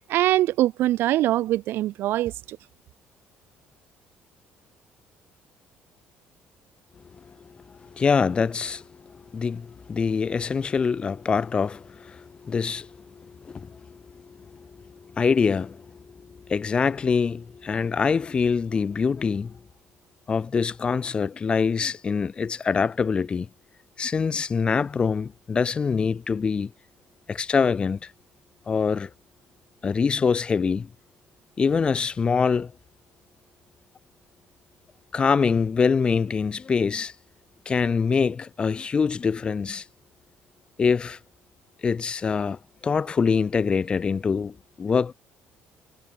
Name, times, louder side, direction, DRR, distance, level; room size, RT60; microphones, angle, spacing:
voice 1, 0.1-2.6, right 15 dB, 65° right, 1.4 m, -23 dB
voice 2, 7.9-8.8 9.3-12.9 13.2-14.0 14.5-14.7 15.1-15.9 16.5-19.6 20.3-23.5 24.0-26.7 27.3-28.0 28.7-29.1 29.8-30.9 31.6-32.7 35.1-37.1 37.7-39.8 40.8-41.2 41.8-45.1, left 5 dB, 25° left, 2.5 m, -24 dB
cardioid pair, 165°, 4 cm